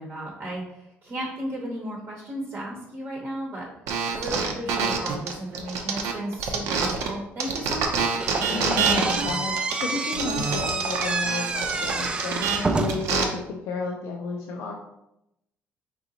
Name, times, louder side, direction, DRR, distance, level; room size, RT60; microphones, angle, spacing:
voice 1, 0.0-3.7 4.1-8.1, right 1 dB, 40° right, -3 dB, 0.9 m, -34 dB
sound 1, 3.9-7.1 7.4-13.2, right 5 dB, 80° right, 0.7 m, -26 dB
Slam / Squeak, 8.2-13.2, right 3 dB, 20° right, 0.3 m, -28 dB
voice 2, 8.5-14.7, left 4 dB, 90° left, 0 dB, 0.5 m, -33 dB
4.3 x 3.8 x 2.8 m, 0.83 s
cardioid pair, 135°, 5 cm